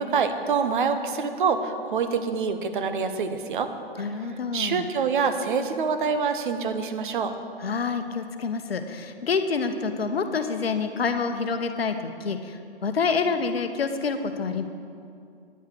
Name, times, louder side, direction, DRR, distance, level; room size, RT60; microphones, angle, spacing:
voice 1, 0.0-3.7 4.5-7.3, right 5 dB, 55° right, 8 dB, 0.9 m, -26 dB
voice 2, 4.0-4.9 7.6-14.6, left 5 dB, 70° left, 8 dB, 0.9 m, -27 dB
9.7 x 5.7 x 7.9 m, 2.4 s
figure-of-eight pair, 120°, 31 cm